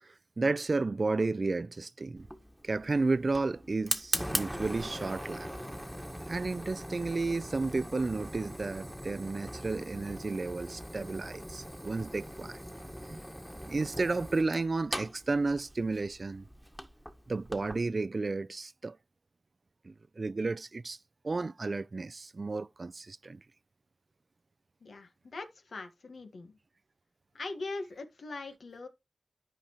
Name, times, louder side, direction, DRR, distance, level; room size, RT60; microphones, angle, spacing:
voice 1, 0.0-2.3 2.6-5.5 6.3-12.6 13.1-13.2 13.6-16.5 17.3-19.0 19.8-21.0 21.2-23.4, right 3 dB, 55° right, 0.4 m, -32 dB
Fire, 2.2-17.8, equal, ahead, 1.5 m, -40 dB
voice 2, 24.8-26.6 27.3-28.9, left 3 dB, 80° left, 1.5 m, -41 dB
12.0 x 5.1 x 3.0 m
cardioid pair, 45°, 0 cm